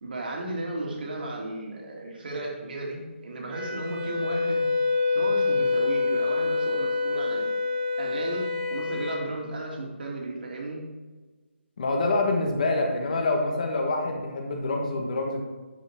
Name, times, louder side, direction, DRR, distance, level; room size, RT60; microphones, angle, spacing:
voice 1, 0.0-4.7 5.1-7.5 8.0-10.9, right 2 dB, 50° right, -1 dB, 2.2 m, -34 dB
Wind instrument woodwind instrument, 3.5-9.2, left 4 dB, 10° right, 0.8 m, -26 dB
voice 2, 11.8-15.4, left 2 dB, 40° left, 2 dB, 1.4 m, -26 dB
10.5 x 5.6 x 4.5 m, 1.3 s
hypercardioid pair, 175°, 7 cm